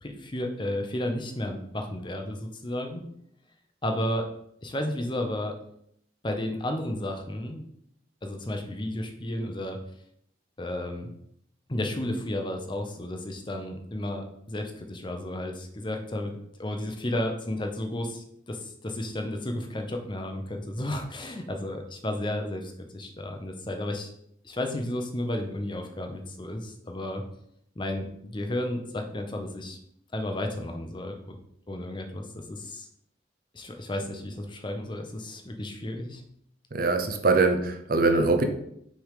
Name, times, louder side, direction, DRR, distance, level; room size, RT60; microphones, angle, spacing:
voice 1, 0.0-3.0 3.8-4.3 4.6-5.5 6.2-7.6 8.2-9.8 10.6-11.1 11.7-24.1 24.4-27.2 27.8-29.8 30.1-31.4 31.7-32.9 33.5-36.2, left 1 dB, 25° left, 4 dB, 0.7 m, -33 dB
voice 2, 36.7-38.4, right 3 dB, 50° right, 6 dB, 0.7 m, -22 dB
6.3 x 3.5 x 5.0 m, 0.72 s
head